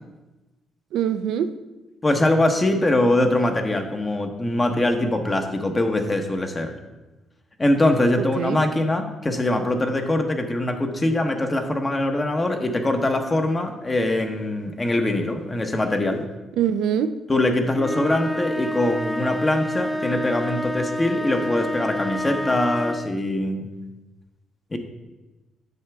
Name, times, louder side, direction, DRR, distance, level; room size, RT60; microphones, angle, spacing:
voice 1, 0.9-1.6 8.2-8.6 16.6-17.2, right 9 dB, 85° right, 0.4 m, -24 dB
voice 2, 2.0-6.7 7.6-16.2 17.3-23.7 24.7-24.8, left 1 dB, 25° left, 1.0 m, -22 dB
sound 1, 17.7-23.2, equal, ahead, 0.4 m, -28 dB
9.3 x 6.6 x 3.5 m
cardioid pair, 90°, 0 cm